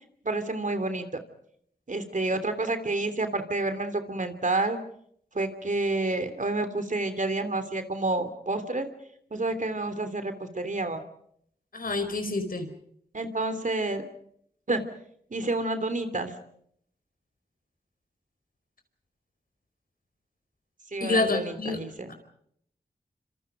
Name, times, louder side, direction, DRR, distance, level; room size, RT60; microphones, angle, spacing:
voice 1, 0.2-1.0 1.9-4.8 5.3-8.9 9.3-11.0 13.1-14.0 14.7-14.8 15.3-16.3 20.9-22.1, right 2 dB, 50° right, 9 dB, 3.1 m, -29 dB
voice 2, 11.7-12.7 21.0-21.8 22.1-22.2, left 3 dB, 60° left, 8 dB, 4.9 m, -27 dB
27.0 x 26.0 x 5.1 m, 0.68 s
cardioid pair, 50°, 17 cm